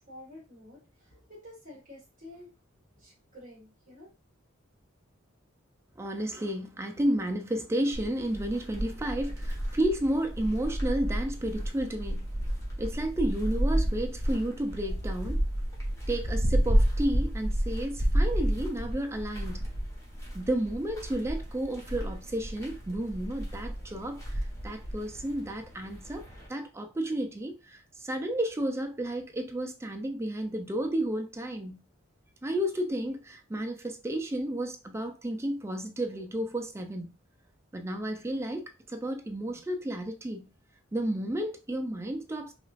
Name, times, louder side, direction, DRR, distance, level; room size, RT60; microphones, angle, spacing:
voice 1, 0.0-2.5 2.9-4.1, left 1 dB, 40° right, 1.5 m, -50 dB
voice 2, 6.0-12.3 12.8-15.4 16.1-19.6 20.3-24.2 24.6-26.2 26.5-31.8 32.4-37.1 37.7-40.5 40.9-42.5, right 1 dB, 15° right, 0.4 m, -32 dB
sound 1, 7.9-26.5, equal, 15° left, 1.1 m, -31 dB
5.0 x 2.5 x 2.4 m
head